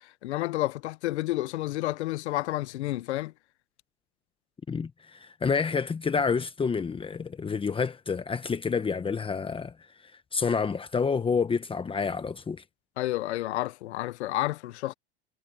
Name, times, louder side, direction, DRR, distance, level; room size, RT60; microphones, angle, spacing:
voice 1, 0.2-3.3 13.0-14.9, left 16 dB, 85° left, 0.9 m, -30 dB
voice 2, 4.7-9.7 10.3-12.6, left 5 dB, 15° left, 1.2 m, -28 dB
supercardioid pair, 120°, 33 cm